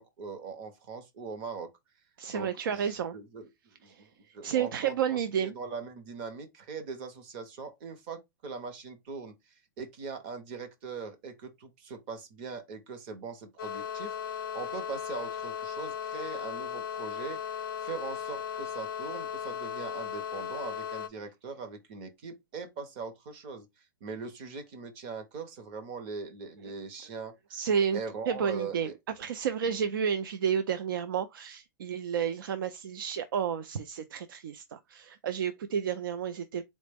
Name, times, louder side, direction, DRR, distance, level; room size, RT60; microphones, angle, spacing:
voice 1, 0.0-1.7 2.3-3.5 3.8-4.1 4.3-9.3 9.8-27.6 27.9-28.9 29.7-29.8, right 5 dB, 25° right, 0.6 m, -41 dB
voice 2, 2.2-3.1 3.9-5.5 27.5-28.0 28.3-28.9 29.2-36.6, right 7 dB, 85° right, 0.4 m, -31 dB
sound 1, 13.6-21.1, left 8 dB, 90° left, 0.5 m, -36 dB
3.9 x 2.1 x 3.4 m
supercardioid pair, 180°, 11 cm